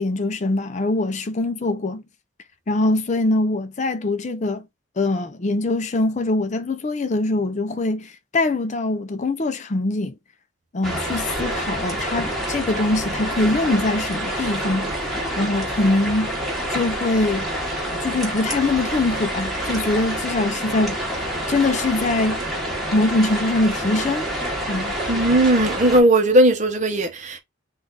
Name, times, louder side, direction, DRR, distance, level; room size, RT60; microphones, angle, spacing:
voice 1, 0.0-2.0 2.7-4.7 5.0-10.1 10.7-15.0 15.4-16.3 16.7-17.5 18.0-21.0 21.5-22.4 22.9-24.3 24.7-24.9, left 2 dB, 35° left, 0.5 m, -23 dB
sound 1, 10.8-26.0, right 1 dB, ahead, 1.2 m, -27 dB
voice 2, 25.1-27.4, right 1 dB, 40° right, 0.7 m, -17 dB
3.7 x 2.4 x 3.9 m
head